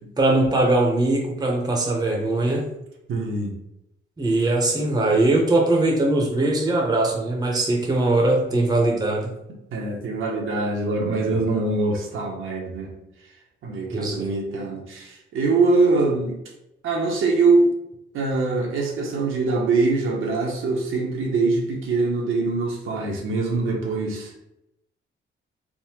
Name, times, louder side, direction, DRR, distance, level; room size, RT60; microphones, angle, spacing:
voice 1, 0.2-2.7 4.2-9.4 13.9-14.3, right 2 dB, 20° right, 0 dB, 0.7 m, -21 dB
voice 2, 3.1-3.6 9.7-12.9 13.6-16.4 16.8-17.7 18.1-24.3, right 3 dB, 80° right, -1 dB, 0.7 m, -23 dB
3.5 x 2.0 x 2.9 m, 0.84 s
cardioid pair, 100°, 21 cm